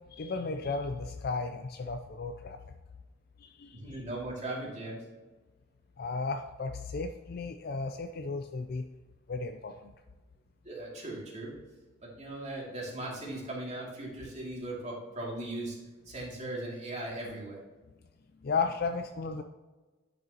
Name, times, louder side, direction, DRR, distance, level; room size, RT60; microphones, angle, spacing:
voice 1, 0.1-2.6 3.4-4.0 6.0-8.9 9.3-9.9 18.4-19.4, left 4 dB, 50° left, 7 dB, 0.4 m, -34 dB
voice 2, 3.7-5.0 10.6-11.5 12.0-15.8 16.0-17.6, right 1 dB, 35° right, -3 dB, 2.5 m, -38 dB
10.5 x 6.7 x 2.9 m, 1.2 s
head